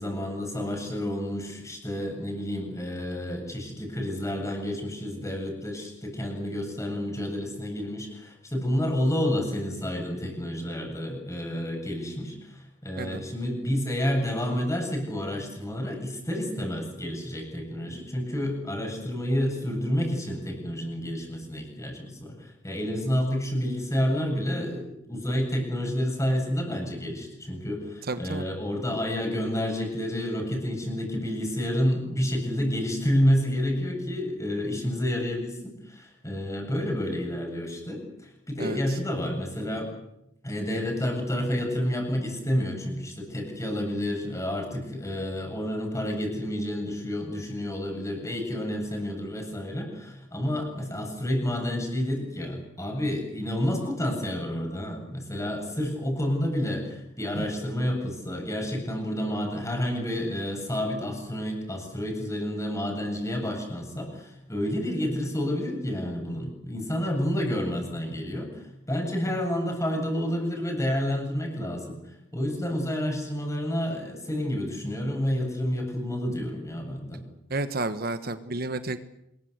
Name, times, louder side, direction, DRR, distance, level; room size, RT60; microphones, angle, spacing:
voice 1, 0.0-39.9 40.4-72.0 72.3-77.3, equal, 15° left, 3 dB, 7.9 m, -29 dB
voice 2, 28.0-28.4 38.6-38.9 57.3-57.5 77.5-79.0, right 2 dB, 55° right, 10 dB, 1.3 m, -31 dB
26.5 x 22.0 x 8.2 m, 0.83 s
head